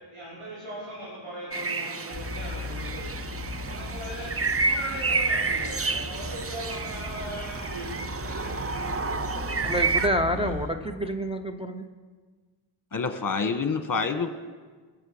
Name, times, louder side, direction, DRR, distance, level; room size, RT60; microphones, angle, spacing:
voice 1, 0.1-3.3 3.7-4.3 4.6-8.0 8.2-8.9, equal, 85° right, -9 dB, 5.5 m, -39 dB
sound 1, 1.5-10.1, right 4 dB, 30° right, 0.6 m, -30 dB
sound 2, 2.1-10.7, left 2 dB, 45° right, 3.1 m, -38 dB
voice 2, 9.6-11.8, equal, 10° right, 2 dB, 0.9 m, -28 dB
voice 3, 12.9-14.3, left 5 dB, 40° left, 8 dB, 1.4 m, -28 dB
21.0 x 7.8 x 6.6 m, 1.5 s
wide cardioid pair, 75°, 49 cm